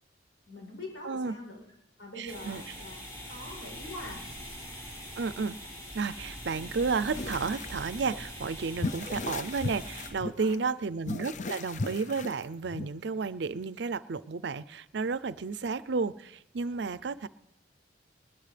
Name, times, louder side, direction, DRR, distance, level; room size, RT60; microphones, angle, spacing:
voice 1, 0.5-1.6 2.0-4.3 10.4-10.6, left 2 dB, 80° left, 0 dB, 7.5 m, -44 dB
voice 2, 2.2-2.6 5.2-5.6 5.9-17.3, right 4 dB, 65° right, 16 dB, 0.5 m, -32 dB
sound 1, 2.3-10.1, equal, 20° left, 6.1 m, -43 dB
sound 2, 7.1-7.7 8.1-8.2 8.8-10.5 11.0-12.9, left 3 dB, 40° left, 0.5 m, -36 dB
20.0 x 20.0 x 3.4 m, 0.84 s
head